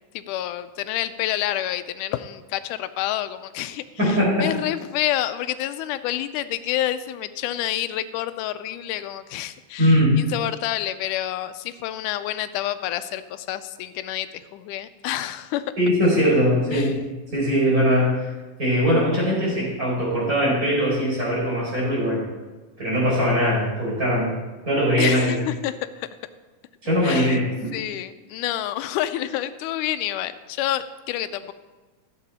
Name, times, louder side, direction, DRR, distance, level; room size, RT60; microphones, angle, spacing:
voice 1, 0.1-15.7 16.7-16.9 25.0-26.1 27.0-27.4 27.7-31.5, left 12 dB, 85° left, 11 dB, 2.1 m, -28 dB
voice 2, 4.0-4.5 9.8-10.2 15.8-17.0 17.3-18.3 18.6-22.3 22.8-24.3 24.7-25.4 26.8-27.8, equal, 25° right, -5 dB, 4.6 m, -21 dB
15.0 x 7.5 x 4.2 m, 1.2 s
omnidirectional pair, 3.6 m